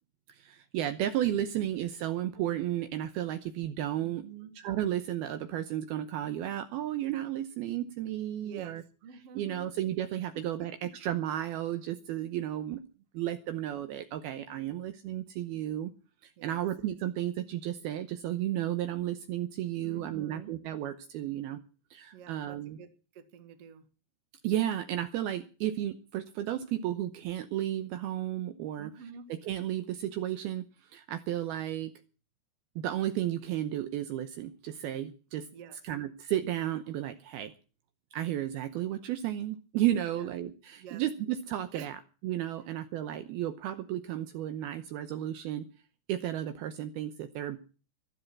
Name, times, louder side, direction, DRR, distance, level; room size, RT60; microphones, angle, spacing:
voice 1, 0.3-4.3 4.6-8.8 9.4-10.7 11.0-12.8 13.1-15.9 16.2-21.6 21.9-22.8 24.4-28.9 29.4-30.6 30.9-31.9 32.8-35.5 35.8-37.5 38.1-42.0 42.2-45.7 46.1-47.6, right 12 dB, 90° right, 9 dB, 2.2 m, -33 dB
voice 2, 4.0-4.5 8.4-8.8 9.0-9.7 10.3-10.9 16.4-16.6 19.8-20.5 22.1-23.8 28.8-29.3 35.5-35.8 40.1-40.3 40.8-41.0 41.7-41.9, right 7 dB, 60° right, 8 dB, 1.6 m, -48 dB
14.5 x 12.5 x 6.0 m, 0.36 s
omnidirectional pair, 5.6 m